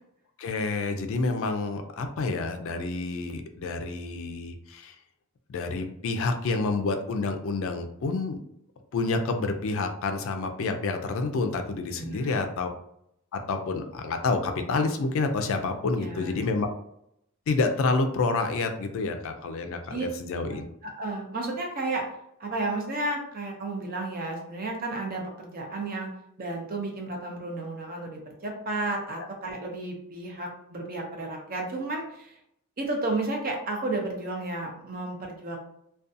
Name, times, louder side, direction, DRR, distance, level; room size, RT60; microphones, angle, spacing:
voice 1, 0.4-4.9 5.5-8.4 8.9-12.7 13.3-16.7 17.5-20.6, left 3 dB, 60° left, 6 dB, 0.3 m, -28 dB
voice 2, 12.0-12.5 15.9-16.4 19.9-20.1 20.5-22.1 22.4-26.1 26.4-32.4 32.8-35.6, right 2 dB, 40° right, 1 dB, 0.5 m, -32 dB
2.5 x 2.2 x 2.5 m, 0.76 s
head